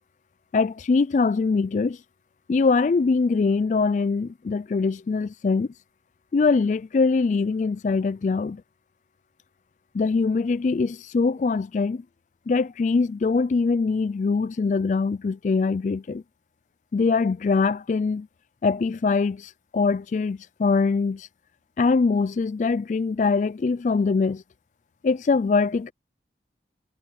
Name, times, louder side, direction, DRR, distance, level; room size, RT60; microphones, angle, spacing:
voice 1, 0.5-2.0 2.5-5.7 6.3-8.6 9.9-12.0 12.5-16.2 16.9-18.3 18.6-21.3 21.8-24.4 25.0-25.9, left 4 dB, 45° left, 0.3 m, -23 dB
head